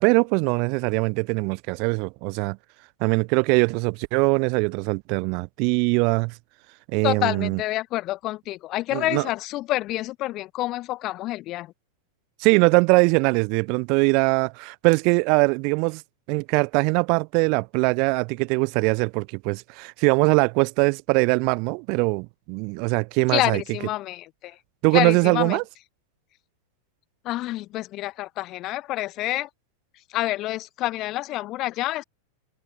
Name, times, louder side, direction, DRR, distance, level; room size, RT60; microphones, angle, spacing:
voice 1, 0.0-2.6 3.0-6.3 6.9-7.6 8.9-9.2 12.4-16.0 16.3-23.6 24.8-25.6, right 33 dB, 45° right, 0.5 m, -22 dB
voice 2, 7.0-11.7 23.3-24.6 24.9-25.6 27.2-29.5 30.1-32.0, left 17 dB, 35° left, 0.7 m, -28 dB
figure-of-eight pair, 90°, 0 cm